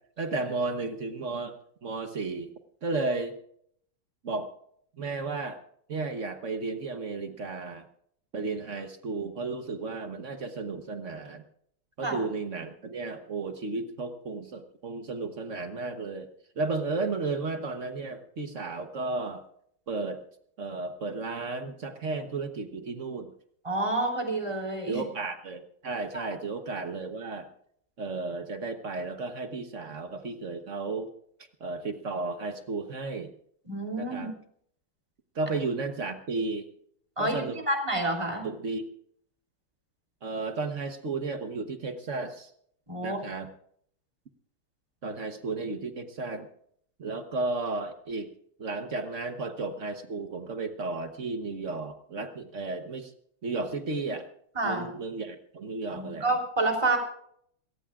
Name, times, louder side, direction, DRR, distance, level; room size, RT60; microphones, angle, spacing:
voice 1, 0.2-2.5 2.8-3.3 4.2-4.5 5.0-5.6 5.9-7.9 8.3-11.4 12.0-16.3 16.6-19.4 19.9-20.2 20.6-23.3 24.9-27.5 28.0-31.1 31.6-33.3 34.0-34.3 35.3-36.7 37.2-37.6 38.4-38.8 40.2-42.5 43.0-43.5 45.0-46.5 47.0-48.3 48.6-53.1 53.4-54.3 54.6-56.3, right 3 dB, 45° right, 7 dB, 1.1 m, -33 dB
voice 2, 23.6-25.0 26.1-26.3 33.6-34.3 37.2-38.5 42.9-43.2 54.5-54.9 55.9-57.0, right 2 dB, 15° right, 2 dB, 3.3 m, -29 dB
27.5 x 14.5 x 2.4 m, 0.66 s
omnidirectional pair, 2.4 m